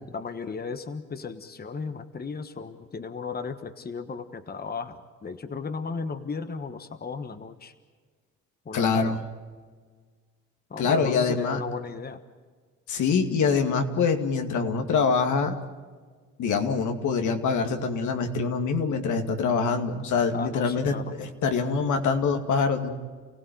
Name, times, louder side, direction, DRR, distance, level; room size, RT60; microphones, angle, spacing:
voice 1, 0.1-7.7 8.6-9.2 10.7-12.2 20.3-21.1, left 5 dB, 30° left, 9 dB, 1.4 m, -35 dB
voice 2, 8.7-9.2 10.8-11.6 12.9-15.5 16.4-22.9, left 5 dB, 75° left, 5 dB, 2.5 m, -25 dB
29.0 x 17.0 x 9.3 m, 1.5 s
cardioid pair, 90°, 30 cm